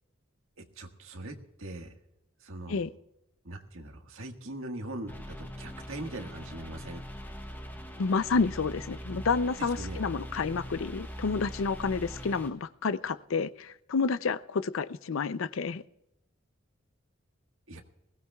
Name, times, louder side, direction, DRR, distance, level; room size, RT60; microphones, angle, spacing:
voice 1, 0.6-1.9 2.4-2.8 3.4-7.0 9.6-10.0 17.7-17.8, right 1 dB, 80° right, 4 dB, 1.6 m, -41 dB
sound 1, 5.1-12.5, equal, 10° left, 1.3 m, -42 dB
voice 2, 8.0-15.8, left 4 dB, 75° left, 16 dB, 0.5 m, -30 dB
21.0 x 16.0 x 2.3 m, 0.87 s
head